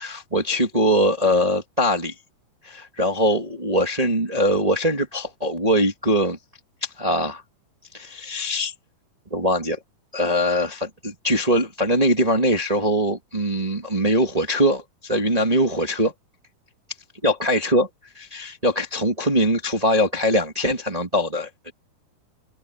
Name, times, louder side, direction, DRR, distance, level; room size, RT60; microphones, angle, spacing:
voice 1, 0.0-2.1 2.6-6.4 7.0-7.4 7.9-8.7 9.3-9.8 10.1-16.1 17.2-17.9 18.1-21.7, equal, 35° right, 0.5 m, -22 dB
omnidirectional pair, 4.7 m